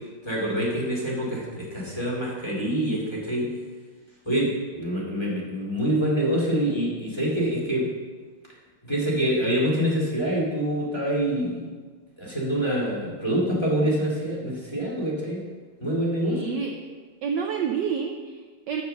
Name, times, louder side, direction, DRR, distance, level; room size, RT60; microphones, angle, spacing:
voice 1, 0.2-3.5 4.3-7.9 8.8-11.6 12.2-15.5 15.8-16.6, equal, 10° left, -6 dB, 2.3 m, -26 dB
voice 2, 16.2-16.8 17.2-18.8, right 7 dB, 70° right, 3 dB, 1.1 m, -29 dB
7.1 x 6.8 x 6.6 m, 1.4 s
omnidirectional pair, 2.3 m